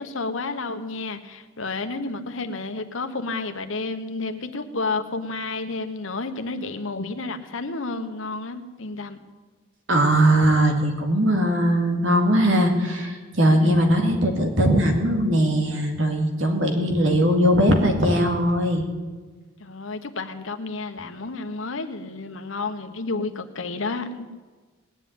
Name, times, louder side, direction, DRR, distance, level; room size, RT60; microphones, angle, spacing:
voice 1, 0.0-9.2 13.6-13.9 19.6-24.4, left 3 dB, 75° left, 7 dB, 1.2 m, -31 dB
voice 2, 9.9-18.8, equal, 70° right, 3 dB, 2.4 m, -20 dB
19.0 x 7.4 x 9.5 m, 1.4 s
head